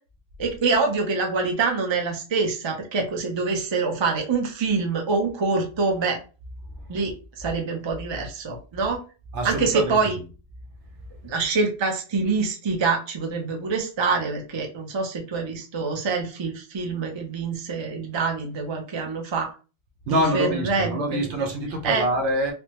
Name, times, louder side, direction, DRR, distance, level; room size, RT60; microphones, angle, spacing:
voice 1, 0.4-6.2 6.9-9.0 9.4-10.1 11.2-19.5 20.1-21.0 21.8-22.0, right 4 dB, 35° right, 0.5 m, -25 dB
voice 2, 9.3-10.2 20.1-22.5, right 1 dB, 75° right, 1.0 m, -26 dB
3.3 x 2.1 x 2.9 m
omnidirectional pair, 1.2 m